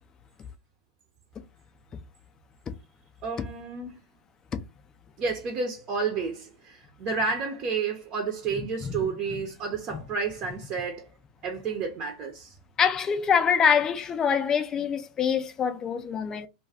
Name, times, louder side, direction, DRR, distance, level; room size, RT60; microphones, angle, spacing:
voice 1, 3.2-4.0 5.2-11.1 11.4-12.6, right 5 dB, 40° right, 0.8 m, -31 dB
voice 2, 8.6-9.0 12.8-16.5, left 7 dB, 25° left, 0.5 m, -25 dB
2.4 x 2.3 x 3.4 m
hypercardioid pair, 100°, 2 cm